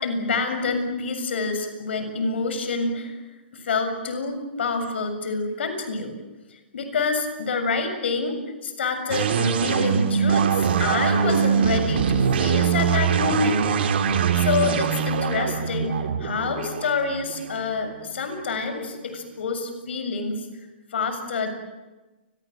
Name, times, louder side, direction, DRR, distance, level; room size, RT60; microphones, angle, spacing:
voice 1, 0.0-3.2 3.5-6.1 6.7-8.4 8.6-13.6 14.1-20.4 20.9-21.5, left 4 dB, 70° left, 8 dB, 7.1 m, -27 dB
sound 1, 9.1-18.5, right 7 dB, 65° right, 3.6 m, -23 dB
29.5 x 24.0 x 7.9 m, 1.1 s
hypercardioid pair, 135°, 6 cm